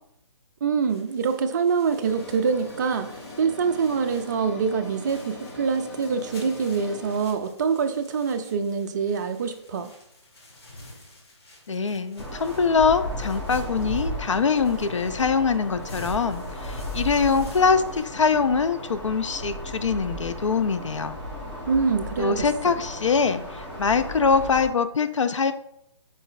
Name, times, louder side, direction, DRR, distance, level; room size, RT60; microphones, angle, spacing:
voice 1, 0.6-3.1 3.4-9.9 21.7-22.7, right 5 dB, 40° right, 7 dB, 0.3 m, -25 dB
sound 1, 0.7-18.1, left 1 dB, 55° left, 1.7 m, -50 dB
sound 2, 2.0-7.2, left 2 dB, 35° left, 1.0 m, -41 dB
voice 2, 11.7-21.2 22.2-25.5, left 5 dB, 80° left, 10 dB, 0.4 m, -23 dB
sound 3, 12.2-24.7, equal, 10° left, 0.9 m, -35 dB
5.3 x 3.8 x 2.4 m, 0.76 s
figure-of-eight pair, 140°, 16 cm